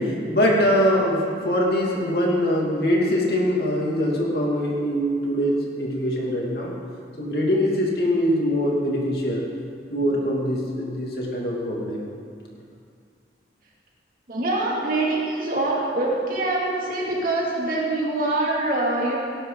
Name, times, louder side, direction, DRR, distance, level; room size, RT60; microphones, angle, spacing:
voice 1, 0.0-6.7 7.2-9.5 9.9-12.0, equal, 60° left, -3 dB, 2.6 m, -23 dB
voice 2, 14.3-19.2, right 2 dB, 50° right, -4 dB, 2.7 m, -24 dB
18.0 x 11.5 x 4.1 m, 2.3 s
head